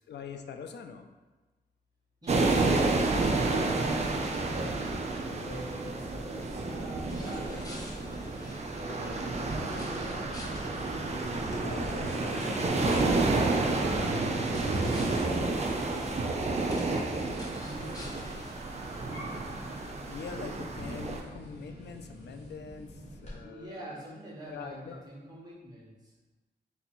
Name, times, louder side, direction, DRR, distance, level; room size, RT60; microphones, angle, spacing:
voice 1, 0.1-1.1 11.6-13.2 19.8-24.0 24.5-25.0, left 6 dB, 75° left, 6 dB, 0.4 m, -43 dB
voice 2, 2.2-4.8 5.4-8.0 8.8-10.3 12.3-16.3 17.5-18.2 22.7-22.8 23.4-26.1, right 1 dB, 20° right, -7 dB, 1.2 m, -42 dB
sound 1, 2.3-21.2, right 3 dB, 40° right, 0.4 m, -30 dB
sound 2, 7.0-18.5, left 1 dB, 20° left, 0.6 m, -46 dB
sound 3, 9.7-23.3, equal, 40° left, 1.5 m, -44 dB
4.0 x 2.7 x 4.3 m, 1.2 s
wide cardioid pair, 160°, 18 cm